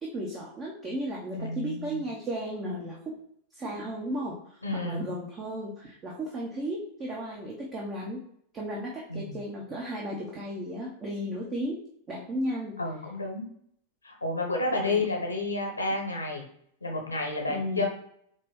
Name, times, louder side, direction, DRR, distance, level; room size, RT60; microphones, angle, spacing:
voice 1, 0.0-3.2 3.5-8.2 8.5-11.8 12.1-12.8 14.7-15.1 17.5-17.9, equal, 25° right, -3 dB, 0.8 m, -34 dB
voice 2, 1.4-2.0 4.6-5.0 9.1-9.4 12.8-13.5 14.0-16.5 16.8-17.9, left 2 dB, 80° left, 1 dB, 0.9 m, -30 dB
4.6 x 3.0 x 3.1 m, 0.68 s
figure-of-eight pair, 90°, 0 cm